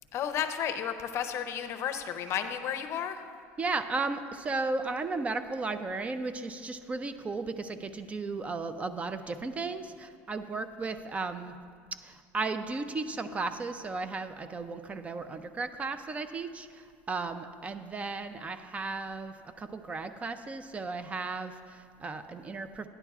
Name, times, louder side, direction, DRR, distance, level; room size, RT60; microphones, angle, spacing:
voice 1, 0.1-3.2, left 9 dB, 45° left, 8 dB, 0.6 m, -32 dB
voice 2, 3.6-11.6 12.0-22.9, right 3 dB, 20° right, 10 dB, 0.4 m, -35 dB
13.0 x 9.9 x 2.4 m, 2.1 s
supercardioid pair, 125°, 6 cm